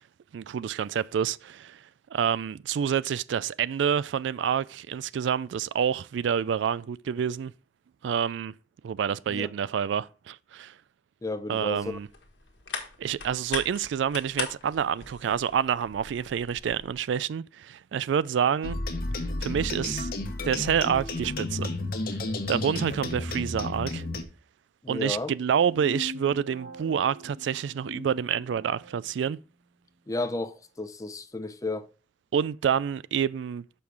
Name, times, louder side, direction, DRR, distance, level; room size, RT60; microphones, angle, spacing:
voice 1, 0.3-1.8 2.1-7.5 8.0-8.5 8.8-10.7 11.5-12.1 13.0-18.8 19.4-20.1 20.4-21.7 22.5-24.0 24.9-29.4 32.3-33.6, right 8 dB, 85° right, 0.3 m, -28 dB
voice 2, 11.2-12.0 24.8-25.3 30.1-31.9, left 2 dB, 20° left, 0.6 m, -32 dB
sound 1, 11.8-16.9, left 5 dB, 90° left, 1.5 m, -40 dB
sound 2, 18.6-24.2, left 2 dB, 55° left, 1.0 m, -32 dB
sound 3, 25.5-29.0, left 2 dB, 50° right, 1.2 m, -42 dB
6.8 x 5.5 x 4.5 m
head